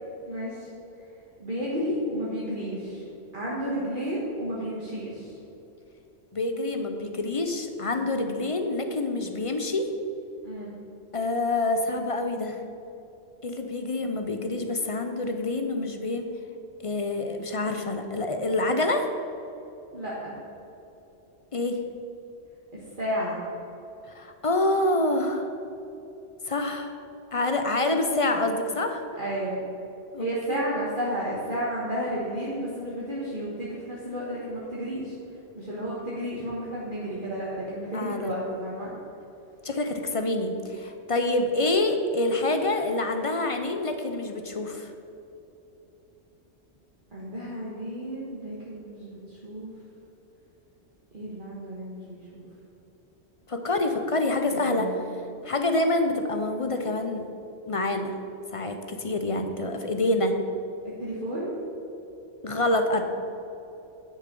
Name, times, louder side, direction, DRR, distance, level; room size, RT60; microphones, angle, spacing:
voice 1, 0.2-0.7 1.4-3.0 3.3-5.4 10.4-10.7 19.9-20.4 22.7-23.4 29.2-29.7 30.2-35.1 35.5-38.9 47.1-49.7 51.1-52.5 54.4-55.1 61.0-61.6, equal, 45° right, -7 dB, 1.7 m, -32 dB
voice 2, 6.3-9.9 11.1-12.6 13.4-16.3 16.8-19.1 21.5-21.8 24.1-25.5 26.5-26.9 27.3-29.0 30.1-30.6 37.9-38.4 39.6-44.9 53.5-54.9 55.4-57.3 57.7-58.1 58.5-60.4 62.4-63.0, left 2 dB, 35° left, 6 dB, 0.6 m, -27 dB
10.0 x 6.3 x 5.3 m, 2.9 s
omnidirectional pair, 1.2 m